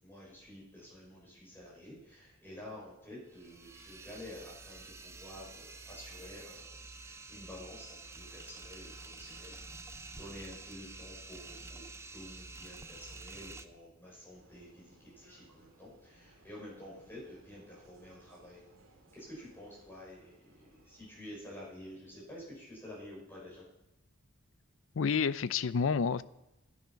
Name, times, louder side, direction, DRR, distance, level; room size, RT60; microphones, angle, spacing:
voice 1, 0.0-9.6 9.8-18.6 19.1-23.6, left 1 dB, 10° left, -6 dB, 5.9 m, -50 dB
sound 1, 3.3-13.6, right 3 dB, 15° right, 0.4 m, -49 dB
Vehicle, 14.3-21.2, right 1 dB, 75° right, 2.2 m, -63 dB
voice 2, 24.9-26.2, left 6 dB, 70° left, 16 dB, 0.4 m, -29 dB
12.0 x 9.5 x 5.7 m, 0.89 s
head